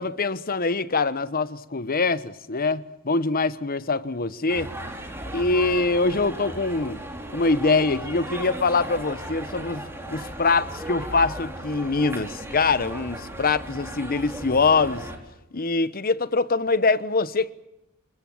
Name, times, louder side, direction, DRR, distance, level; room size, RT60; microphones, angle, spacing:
voice 1, 0.0-4.7 5.3-7.0 7.3-15.1 15.5-17.5, left 3 dB, 40° left, 1.1 m, -24 dB
sound 1, 4.5-15.2, right 1 dB, 10° right, 4.2 m, -36 dB
27.0 x 21.0 x 7.3 m
head